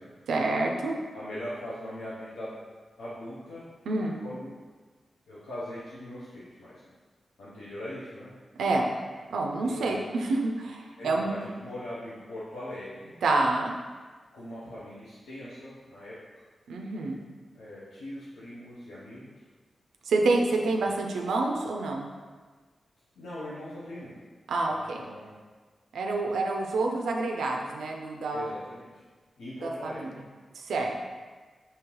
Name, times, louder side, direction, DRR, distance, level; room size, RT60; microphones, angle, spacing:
voice 1, 0.3-1.0 3.9-4.2 8.6-8.9 9.3-11.3 13.2-13.8 16.7-17.2 20.1-22.1 24.5-25.0 25.9-28.4 29.6-30.2 30.5-31.0, right 2 dB, 85° right, 1 dB, 0.3 m, -28 dB
voice 2, 1.1-2.6 3.0-3.7 4.0-4.6 5.3-6.8 7.4-8.3 9.6-10.0 11.0-13.1 14.3-16.2 17.5-19.3 20.6-20.9 23.2-24.2 24.7-25.3 28.3-28.9 29.4-30.1, left 1 dB, 90° left, -10 dB, 0.6 m, -40 dB
3.7 x 2.7 x 2.9 m, 1.4 s
supercardioid pair, 40°, 0 cm